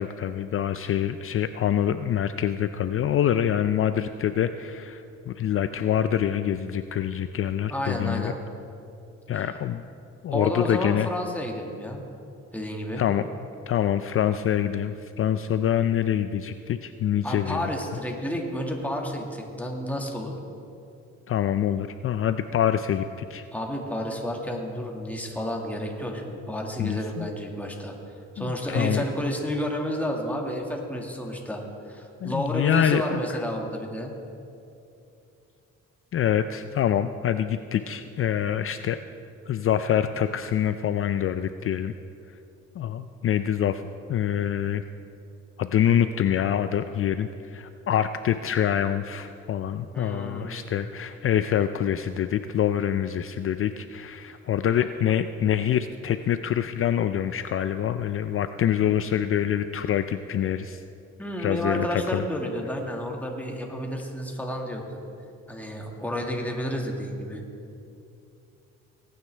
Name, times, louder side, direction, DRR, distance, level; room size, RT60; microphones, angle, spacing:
voice 1, 0.0-8.3 9.3-9.8 10.2-11.1 13.0-13.3 13.7-17.7 21.3-23.5 26.8-27.3 28.4-29.0 32.2-33.4 36.1-39.0 39.5-41.9 42.8-43.8 44.1-44.8 45.6-60.8 61.4-62.3, left 10 dB, 45° left, 10 dB, 0.4 m, -25 dB
voice 2, 7.7-8.4 10.3-12.0 12.5-13.0 17.2-20.3 23.5-27.9 28.4-34.1 49.9-50.7 61.2-65.0 65.5-67.4, equal, 5° left, 0 dB, 1.8 m, -31 dB
18.0 x 9.4 x 3.4 m, 2.7 s
cardioid pair, 90°, 30 cm